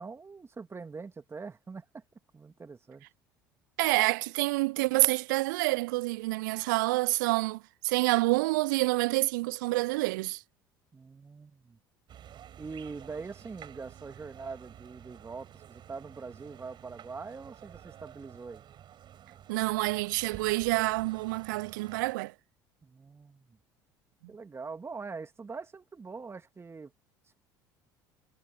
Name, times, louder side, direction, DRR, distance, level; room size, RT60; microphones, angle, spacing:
voice 1, 0.0-2.0 2.3-3.1 10.9-11.8 12.6-18.6 22.8-23.6 24.3-26.9, right 4 dB, 25° right, 2.8 m, -43 dB
voice 2, 3.8-10.4 19.5-22.3, right 22 dB, 65° right, 0.4 m, -27 dB
sound 1, 12.1-22.1, right 10 dB, 45° right, 4.7 m, -51 dB
figure-of-eight pair, 60°, 11 cm